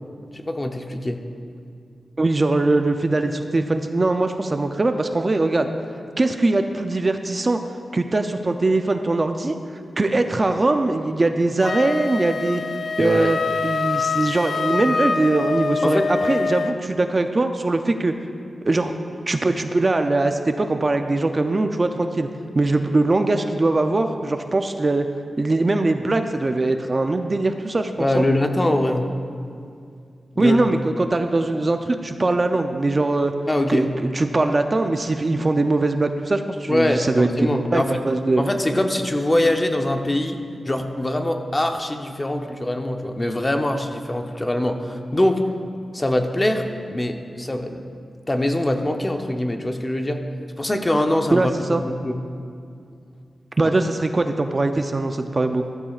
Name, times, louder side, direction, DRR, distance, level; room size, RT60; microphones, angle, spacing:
voice 1, 0.3-1.2 13.0-13.3 15.8-16.1 28.0-29.1 30.4-30.6 33.5-33.9 36.7-38.0 38.4-45.5 45.9-47.8 48.3-50.2 50.6-52.2, left 1 dB, 20° left, 5 dB, 0.7 m, -23 dB
voice 2, 2.2-5.7 6.2-7.6 7.9-9.6 10.0-12.6 13.0-13.4 13.6-18.1 18.6-18.9 19.3-22.3 22.5-25.1 25.4-28.3 30.4-33.3 33.7-38.5 51.3-51.8 53.6-55.7, right 2 dB, 30° right, 6 dB, 0.4 m, -21 dB
Wind instrument woodwind instrument, 11.6-16.8, left 4 dB, 55° left, 0.3 m, -25 dB
14.5 x 13.5 x 2.4 m, 2.3 s
wide cardioid pair, 120°, 0 cm